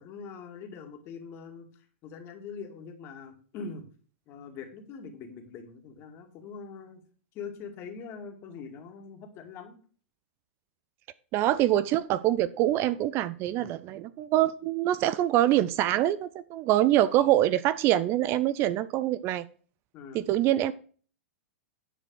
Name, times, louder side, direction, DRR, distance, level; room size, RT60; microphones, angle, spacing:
voice 1, 0.0-1.7 2.0-3.8 4.3-7.0 7.3-9.8 19.9-20.3, left 5 dB, 35° left, 5 dB, 2.3 m, -43 dB
voice 2, 11.3-19.4 20.1-20.7, right 13 dB, 35° right, 16 dB, 0.5 m, -25 dB
9.9 x 5.1 x 6.4 m, 0.43 s
hypercardioid pair, 105°, 7 cm